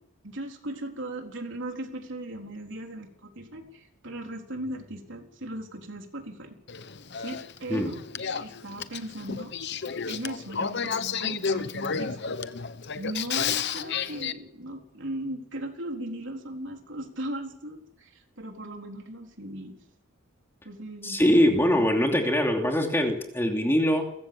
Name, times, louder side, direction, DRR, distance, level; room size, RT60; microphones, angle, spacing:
voice 1, 0.2-6.6 7.2-8.0 8.4-9.5 10.1-12.4 13.0-19.8 20.6-21.8, right 1 dB, 60° right, 2 dB, 4.0 m, -38 dB
Male speech man speaking / Female speech woman speaking / Conversation, 6.7-14.3, left 6 dB, 55° left, 0.9 m, -32 dB
voice 2, 21.0-24.0, equal, 10° left, 2 dB, 2.8 m, -23 dB
29.5 x 15.0 x 7.1 m, 0.79 s
head